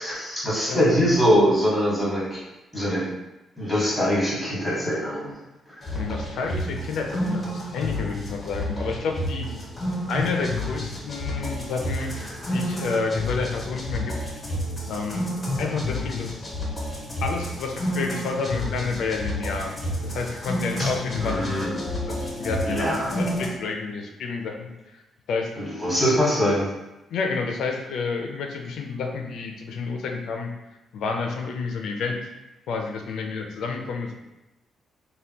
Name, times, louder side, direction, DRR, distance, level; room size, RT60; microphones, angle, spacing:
voice 1, 0.0-2.4 2.7-3.0 3.6-5.3 20.8-20.9 21.2-21.7 22.6-23.1 25.6-26.7, equal, 5° right, -8 dB, 1.2 m, -23 dB
voice 2, 0.7-1.0 6.0-9.5 10.1-12.1 12.5-14.2 14.9-15.3 15.6-16.4 17.2-19.7 20.0-21.8 22.1-24.7 25.3-25.5 27.1-30.5 30.9-32.2 32.7-34.2, left 4 dB, 75° left, 3 dB, 0.4 m, -29 dB
sound 1, 5.8-23.5, left 1 dB, 15° left, 0.6 m, -30 dB
3.5 x 2.2 x 2.8 m, 0.98 s
cardioid pair, 160°, 0 cm